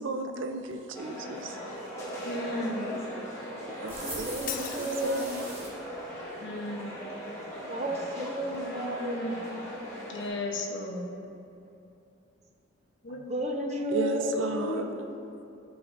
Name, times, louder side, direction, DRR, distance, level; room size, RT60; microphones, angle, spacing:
voice 1, 0.0-1.7 3.6-5.4 5.7-5.9 13.9-14.9, right 3 dB, 75° right, 5 dB, 0.6 m, -35 dB
sound 1, 0.9-10.3, equal, 15° left, 1.5 m, -39 dB
voice 2, 2.2-2.9 6.4-7.2 8.5-9.4 10.1-11.1 13.0-13.2 13.7-15.1, left 2 dB, 65° left, 1 dB, 0.9 m, -35 dB
sound 2, 3.9-5.7, right 1 dB, 15° right, 1.2 m, -41 dB
voice 3, 4.2-5.8 7.7-10.3 13.3-15.2, right 1 dB, 35° right, 3 dB, 0.5 m, -34 dB
Shatter, 4.5-5.5, left 9 dB, 40° left, 0.4 m, -39 dB
11.5 x 4.8 x 2.6 m, 2.7 s
head